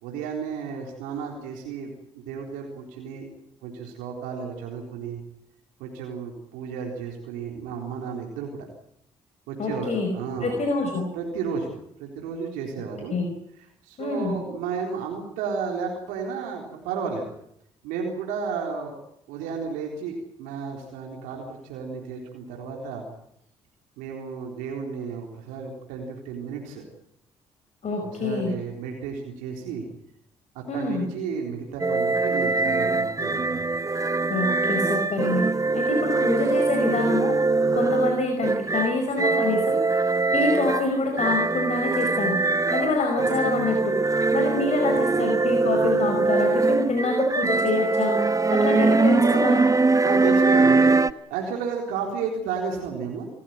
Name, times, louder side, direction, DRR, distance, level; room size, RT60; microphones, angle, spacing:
voice 1, 0.0-3.3 3.6-5.2 5.8-8.7 9.5-10.6 11.1-11.7 12.0-13.1 13.8-17.3 17.8-19.0 19.3-23.1 24.0-26.8 27.9-29.8 30.5-33.6 33.9-34.1 50.0-53.2, right 6 dB, 80° right, 1 dB, 3.9 m, -33 dB
voice 2, 9.6-10.1 10.4-11.1 13.1-13.3 14.0-14.4 27.8-28.6 30.7-31.0 34.3-35.4 35.7-37.4 37.7-39.8 40.3-42.4 42.7-44.0 44.3-48.2 48.5-49.7, left 3 dB, 55° left, 3 dB, 5.2 m, -26 dB
sound 1, 31.8-51.1, right 3 dB, 25° right, 1.0 m, -22 dB
28.0 x 14.5 x 9.3 m, 0.76 s
hypercardioid pair, 50°, 14 cm